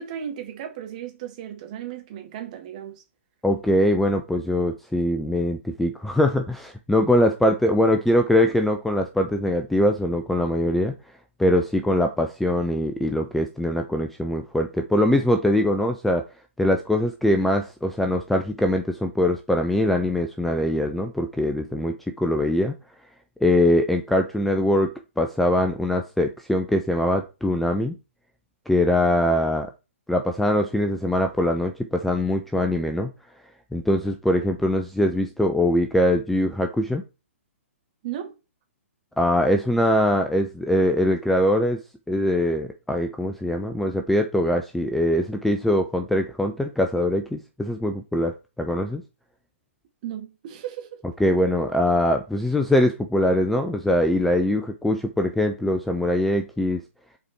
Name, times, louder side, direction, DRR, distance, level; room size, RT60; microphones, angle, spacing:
voice 1, 0.0-3.0 38.0-38.4 50.0-51.0, right 10 dB, 35° right, 1.6 m, -35 dB
voice 2, 3.4-10.9 11.4-16.2 16.6-22.8 23.4-27.9 28.7-29.7 30.1-33.1 33.7-37.0 39.2-41.8 42.1-49.0 51.2-56.8, left 1 dB, ahead, 0.4 m, -22 dB
7.1 x 4.2 x 4.5 m
figure-of-eight pair, 130°, 7 cm